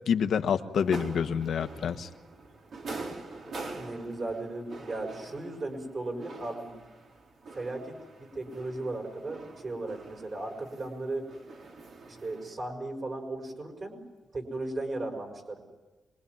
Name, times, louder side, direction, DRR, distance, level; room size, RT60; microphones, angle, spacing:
voice 1, 0.1-2.1, left 7 dB, 65° left, 9 dB, 1.3 m, -27 dB
sound 1, 0.7-12.5, right 3 dB, 60° right, 4.6 m, -45 dB
voice 2, 3.8-6.7 7.5-11.3 12.0-14.0 14.3-15.6, right 2 dB, 35° right, 4 dB, 5.8 m, -36 dB
26.0 x 22.0 x 9.6 m, 1.2 s
wide cardioid pair, 160°, 0 cm